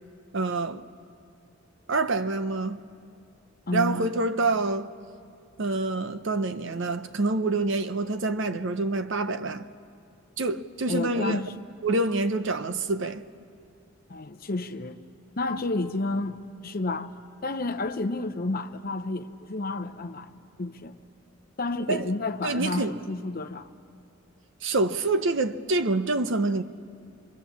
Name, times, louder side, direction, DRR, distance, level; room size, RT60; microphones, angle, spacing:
voice 1, 0.3-0.8 1.9-2.8 3.7-4.9 5.6-9.7 10.4-11.4 11.8-13.2 21.9-22.1 22.4-22.9 24.6-26.6, right 2 dB, 60° right, 0.7 m, -26 dB
voice 2, 3.7-4.0 10.9-11.5 14.1-15.0 15.4-17.1 17.4-21.0 21.6-23.7, left 2 dB, 45° left, 0.7 m, -30 dB
26.0 x 23.0 x 7.2 m
head